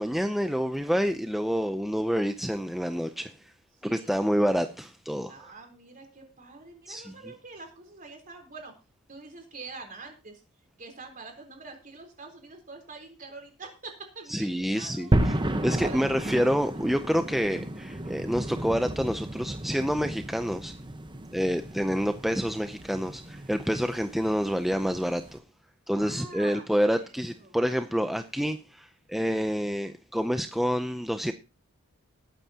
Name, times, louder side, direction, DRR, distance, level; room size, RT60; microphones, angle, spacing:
voice 1, 0.0-3.5 3.8-5.3 6.9-7.1 14.3-15.4 15.6-20.7 21.3-25.4 25.9-31.3, equal, ahead, 0.5 m, -28 dB
voice 2, 3.8-4.2 5.3-8.7 9.1-10.4 10.8-15.2 15.8-16.1 16.8-16.9 21.1-21.3 25.9-27.0 27.4-27.9, right 3 dB, 40° right, 3.7 m, -45 dB
sound 1, 15.1-25.4, right 1 dB, 20° right, 1.0 m, -33 dB
19.5 x 9.1 x 2.8 m
head